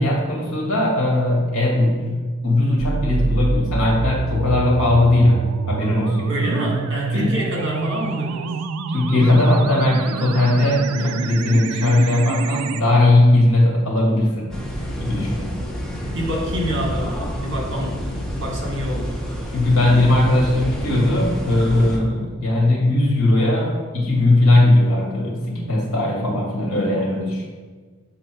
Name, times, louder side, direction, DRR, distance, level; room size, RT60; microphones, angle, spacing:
voice 1, 0.0-6.5 7.1-7.3 8.9-14.6 15.0-15.5 19.5-27.5, left 1 dB, 70° left, -2 dB, 1.9 m, -18 dB
sound 1, 2.8-12.8, right 4 dB, 85° right, 0.4 m, -27 dB
voice 2, 6.3-8.6 16.1-19.2, equal, 55° right, -1 dB, 1.6 m, -27 dB
sound 2, 14.5-22.0, equal, 5° left, 0.8 m, -28 dB
7.8 x 4.0 x 4.5 m, 1.5 s
head